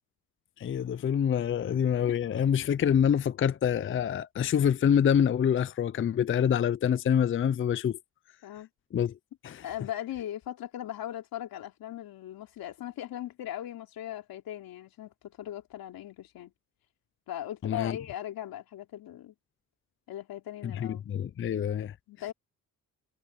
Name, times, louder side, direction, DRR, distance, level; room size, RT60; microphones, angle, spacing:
voice 1, 0.6-8.0 8.9-9.1 9.4-9.6 17.6-18.0 20.6-21.9, left 8 dB, 35° left, 0.5 m, -26 dB
voice 2, 9.6-16.5 17.3-19.3 20.1-21.1 22.1-22.3, left 12 dB, 80° left, 3.2 m, -39 dB
cardioid pair, 110°, 35 cm